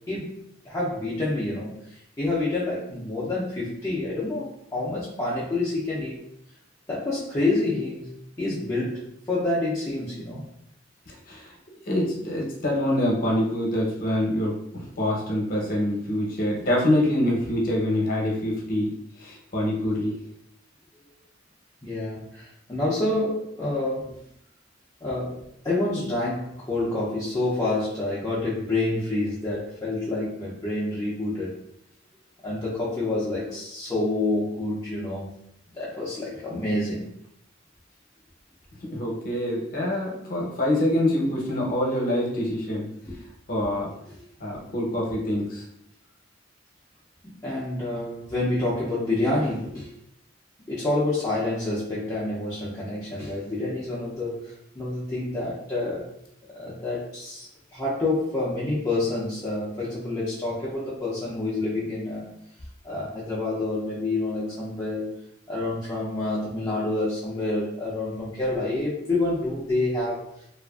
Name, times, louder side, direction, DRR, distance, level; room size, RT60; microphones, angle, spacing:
voice 1, 0.6-1.8 2.2-6.2 6.9-8.1 8.4-10.5 21.8-24.2 25.0-31.6 32.4-35.3 35.7-37.1 43.1-43.2 47.4-49.9 50.7-56.1 56.6-62.3 62.8-65.2 65.5-70.2, left 2 dB, 20° left, -8 dB, 0.5 m, -28 dB
voice 2, 11.1-11.5 11.9-20.1 38.9-42.9 43.5-43.9 44.4-45.6, left 1 dB, 50° left, -2 dB, 0.8 m, -25 dB
2.7 x 2.4 x 2.3 m, 0.74 s
head